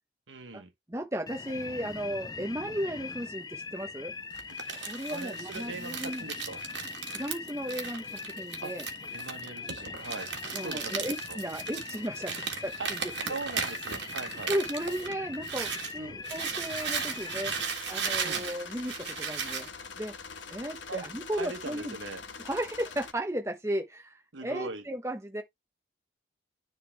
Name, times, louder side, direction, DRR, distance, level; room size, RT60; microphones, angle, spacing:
voice 1, 0.3-0.7 5.1-6.6 8.6-8.7 9.1-10.3 10.6-11.4 12.8-12.9 13.3-14.5 16.0-16.2 18.2-18.4 20.9-21.1 21.3-22.2 24.3-24.8, right 3 dB, 85° right, 1.4 m, -40 dB
voice 2, 0.9-4.1 4.7-6.2 7.1-8.8 10.5-13.0 13.2-13.4 14.3-17.6 17.9-19.7 20.0-20.1 20.5-22.0 22.4-25.4, equal, 15° right, 1.0 m, -35 dB
sound 1, 1.3-17.6, left 4 dB, 20° left, 0.4 m, -41 dB
Crumpling crinkling, 4.3-15.9 16.2-19.7, right 6 dB, 70° right, 1.6 m, -36 dB
sound 2, 17.4-23.1, left 5 dB, 85° left, 1.2 m, -44 dB
10.0 x 3.7 x 3.4 m
head